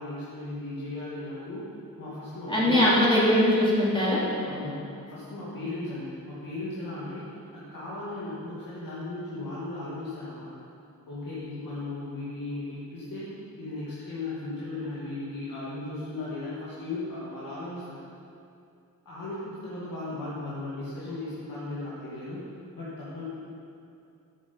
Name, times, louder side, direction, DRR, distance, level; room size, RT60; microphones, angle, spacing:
voice 1, 0.0-1.6 2.0-2.9 4.5-10.5 11.1-18.0 19.1-22.4 22.8-23.2, left 2 dB, 80° left, -9 dB, 2.0 m, -36 dB
voice 2, 2.5-4.2, left 1 dB, 15° left, -8 dB, 2.7 m, -21 dB
9.0 x 8.1 x 5.4 m, 2.5 s
wide cardioid pair, 85°, 33 cm